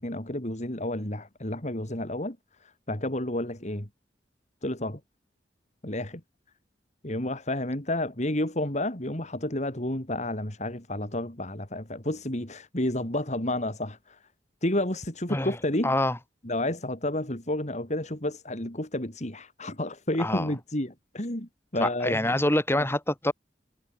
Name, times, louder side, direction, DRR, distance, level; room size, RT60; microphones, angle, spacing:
voice 1, 0.0-2.4 2.6-3.9 4.6-5.0 5.8-6.2 7.0-14.2 14.6-16.0 16.4-22.4 22.8-22.9, left 1 dB, 40° left, 3.7 m, -31 dB
voice 2, 15.8-16.2 20.2-20.5 21.8-23.3, left 1 dB, 15° left, 4.3 m, -26 dB
head